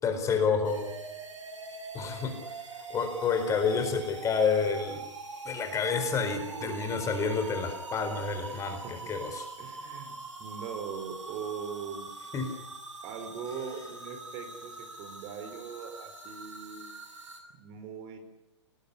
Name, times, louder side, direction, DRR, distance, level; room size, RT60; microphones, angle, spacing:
voice 1, 0.0-0.9 1.9-5.0 5.4-9.4 12.3-12.5, left 5 dB, 20° left, 7 dB, 4.5 m, -29 dB
sound 1, 0.6-17.4, right 3 dB, 85° right, 6.8 m, -43 dB
voice 2, 6.5-7.4 8.5-9.1 9.6-12.1 13.0-16.8 17.5-18.2, right 6 dB, 35° right, 7 dB, 4.6 m, -41 dB
24.0 x 20.0 x 9.9 m, 0.89 s
hypercardioid pair, 120°, 15 cm